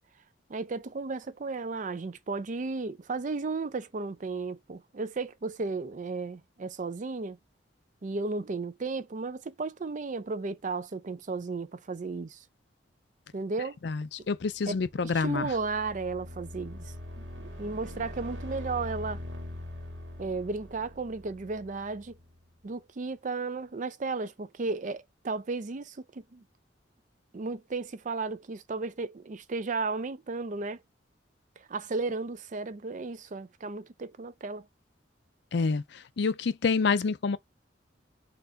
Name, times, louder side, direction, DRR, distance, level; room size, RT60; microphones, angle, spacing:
voice 1, 0.5-7.4 8.0-12.4 13.3-13.8 15.0-16.8 17.6-19.2 20.2-22.2 22.6-26.4 27.3-30.8 31.7-34.7, right 3 dB, 45° right, 0.5 m, -34 dB
voice 2, 13.8-15.5 35.5-35.8 36.2-37.4, left 4 dB, 65° left, 0.5 m, -27 dB
sound 1, 14.8-22.4, left 1 dB, 75° right, 1.8 m, -42 dB
4.4 x 2.5 x 3.9 m
head